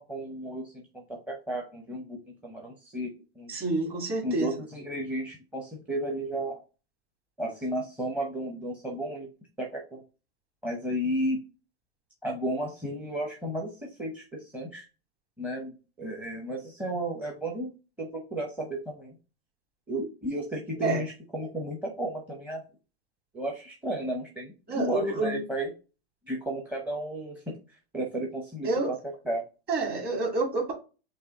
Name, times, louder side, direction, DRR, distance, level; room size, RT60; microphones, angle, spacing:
voice 1, 0.0-3.1 3.4-3.6 4.2-6.6 7.4-9.3 9.6-10.0 10.6-11.4 12.2-14.8 15.4-17.7 18.0-19.1 19.9-22.6 23.3-25.7 26.3-27.6 27.9-29.4, right 1 dB, 5° right, 1 dB, 0.7 m, -33 dB
voice 2, 3.5-4.5 20.8-21.0 24.7-25.4 28.6-28.9 29.7-30.7, right 3 dB, 30° right, 1 dB, 2.0 m, -28 dB
5.5 x 2.3 x 3.6 m, 0.32 s
supercardioid pair, 140°, 32 cm